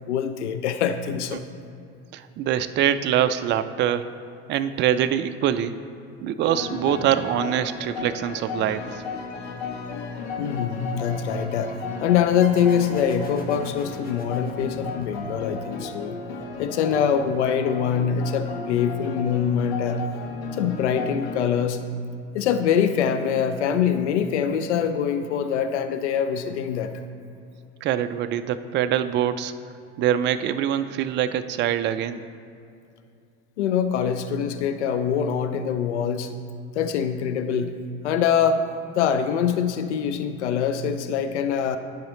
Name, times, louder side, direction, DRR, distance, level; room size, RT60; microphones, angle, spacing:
voice 1, 0.1-1.4 10.4-11.7 12.0-16.2 16.6-20.0 20.5-21.8 22.3-26.9 33.6-36.3 36.8-37.8 38.0-38.7 39.0-41.8, left 8 dB, 85° left, 9 dB, 0.5 m, -24 dB
voice 2, 2.1-4.1 4.5-5.7 6.2-9.0 27.8-29.5 30.0-32.2, right 10 dB, 35° right, 11 dB, 0.4 m, -24 dB
sound 1, 6.4-21.4, left 4 dB, 70° left, 1.1 m, -34 dB
sound 2, 12.4-15.7, left 2 dB, 25° left, 1.3 m, -45 dB
11.5 x 4.9 x 3.1 m, 2.5 s
hypercardioid pair, 75°, 34 cm